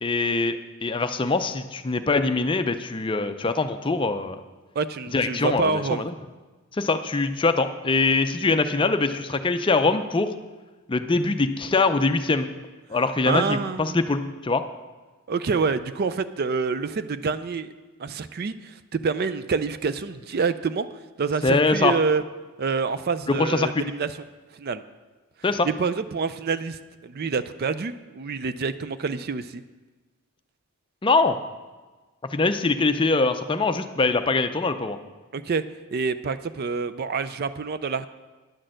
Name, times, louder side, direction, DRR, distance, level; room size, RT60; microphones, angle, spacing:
voice 1, 0.0-4.4 5.1-6.1 6.7-10.3 10.9-12.5 12.9-14.6 21.4-21.9 23.4-23.8 25.4-25.7 31.0-31.4 32.3-35.0, left 3 dB, 20° left, 9 dB, 0.5 m, -23 dB
voice 2, 4.8-6.0 13.2-14.0 15.3-17.7 18.0-20.9 21.2-22.2 22.6-24.1 24.5-24.8 25.6-29.6 35.3-35.6 35.9-38.1, right 5 dB, 45° right, 13 dB, 0.4 m, -27 dB
10.5 x 6.4 x 7.7 m, 1.3 s
head